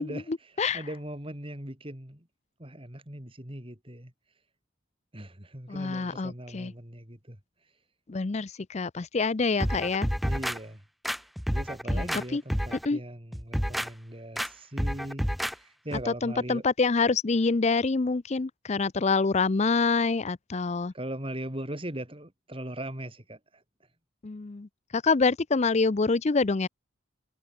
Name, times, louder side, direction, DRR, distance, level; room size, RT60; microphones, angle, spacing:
voice 1, 0.0-0.8 5.7-6.7 8.1-10.1 11.9-12.4 12.8-13.0 16.1-20.9 24.2-26.7, left 4 dB, 35° left, 0.5 m, -26 dB
voice 2, 0.7-2.3 2.6-4.1 5.1-7.4 10.2-10.8 11.5-15.3 15.6-16.6 20.9-23.4, right 1 dB, 25° right, 3.8 m, -39 dB
sound 1, 9.6-10.6 11.0-12.2 12.5-12.9 13.3-13.9 14.4-14.5 14.8-15.5 15.9-16.0, equal, ahead, 1.0 m, -29 dB
head